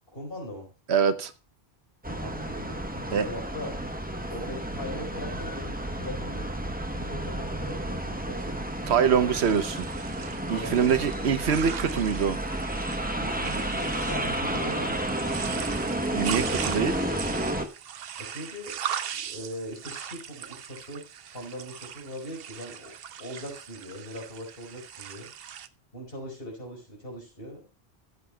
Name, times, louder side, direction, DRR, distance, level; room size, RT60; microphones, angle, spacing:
voice 1, 0.1-0.7 2.1-3.8 4.3-6.6 6.9-8.9 10.5-11.3 13.2-15.0 18.2-18.8 19.3-21.1 21.3-25.3 25.9-27.6, equal, 65° left, 0 dB, 4.8 m, -40 dB
voice 2, 0.9-1.3 3.1-3.3 8.9-9.9 10.5-12.4 16.1-17.0, right 7 dB, 85° right, 12 dB, 1.1 m, -24 dB
sound 1, 2.0-17.7, right 1 dB, 10° right, 0.9 m, -31 dB
sound 2, 9.4-25.7, right 9 dB, 70° right, 0.8 m, -39 dB
16.0 x 8.2 x 2.3 m, 0.32 s
omnidirectional pair, 1.1 m